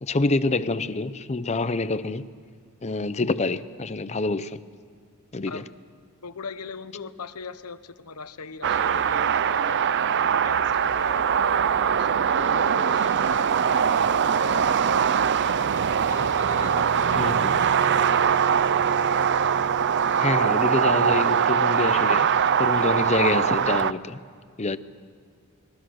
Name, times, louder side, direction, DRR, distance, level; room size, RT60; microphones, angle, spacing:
voice 1, 0.0-2.3 2.8-4.6 5.3-5.6 17.2-17.5 20.2-22.3 22.6-24.2 24.6-24.8, left 3 dB, 30° left, 0.7 m, -26 dB
voice 2, 6.2-9.8 10.4-11.3 11.9-13.4 13.9-14.8 16.0-17.7 17.9-18.1, left 5 dB, 90° left, 1.0 m, -40 dB
sound 1, 8.6-23.9, right 7 dB, 50° right, 0.5 m, -22 dB
28.5 x 22.0 x 6.4 m
head